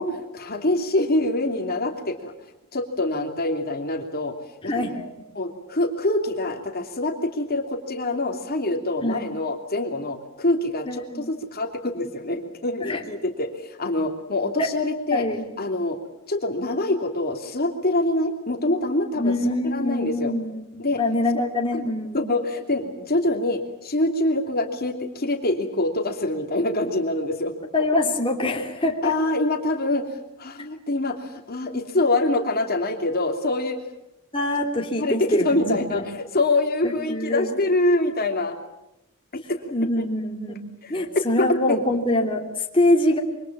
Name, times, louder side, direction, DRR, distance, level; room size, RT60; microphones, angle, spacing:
voice 1, 0.0-2.3 2.7-4.3 4.6-5.0 5.3-15.3 15.6-16.0 16.3-19.3 19.6-20.3 20.8-21.0 21.3-21.4 21.7-21.8 22.1-27.5 29.0-30.1 30.4-33.8 35.0-38.6 39.3-39.7 40.0-40.1 40.8-41.1 41.4-41.8, left 2 dB, 45° left, 4 dB, 3.0 m, -25 dB
voice 2, 4.6-5.1 9.0-9.3 10.9-11.3 12.8-13.0 14.6-14.7 15.1-15.4 19.2-22.4 27.7-29.1 34.3-36.1 36.8-37.6 39.7-43.2, left 1 dB, 25° left, 0 dB, 2.9 m, -24 dB
27.0 x 24.5 x 7.5 m, 0.89 s
head